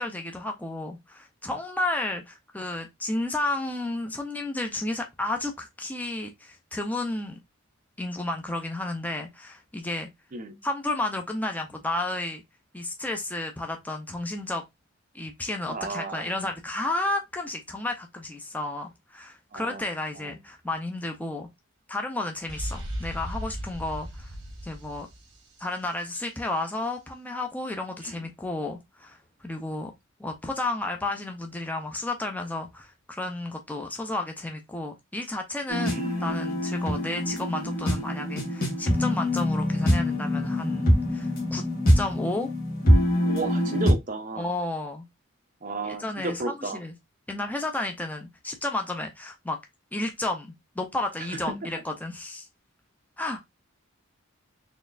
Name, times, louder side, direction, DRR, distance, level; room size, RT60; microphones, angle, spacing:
voice 1, 0.0-7.4 8.0-10.1 10.6-12.4 12.7-14.6 15.1-21.5 21.9-24.3 24.6-25.1 25.6-29.2 29.4-29.9 30.2-41.6 41.9-42.5 44.4-45.0 45.8-46.9 47.3-49.6 49.9-50.5 50.8-52.5 53.2-53.5, left 2 dB, 5° left, 0.4 m, -32 dB
voice 2, 15.7-16.3 19.5-19.8 20.2-20.3 28.0-28.2 35.8-36.4 43.2-44.5 45.6-46.8 51.2-51.6, right 2 dB, 40° right, 0.6 m, -34 dB
Alien Chamber Opening, 22.5-26.2, equal, 55° right, 1.4 m, -37 dB
sound 1, 35.7-43.9, equal, 40° left, 1.4 m, -24 dB
4.1 x 3.1 x 2.4 m
head